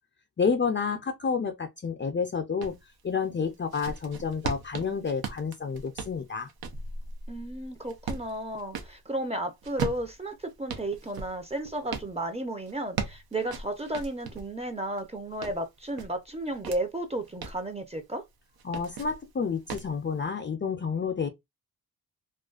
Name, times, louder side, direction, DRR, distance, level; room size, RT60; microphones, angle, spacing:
voice 1, 0.4-2.7 3.0-6.5 18.6-21.3, left 5 dB, 30° left, 0.4 m, -29 dB
sound 1, 2.6-2.8 3.4-9.0 9.6-12.1 12.7-14.5 15.0-16.8 17.2-17.6 18.6-19.2 19.7-19.9, right 5 dB, 75° right, 0.6 m, -37 dB
voice 2, 7.3-18.2, right 1 dB, 15° right, 0.5 m, -33 dB
2.4 x 2.2 x 2.3 m
cardioid pair, 80°, 37 cm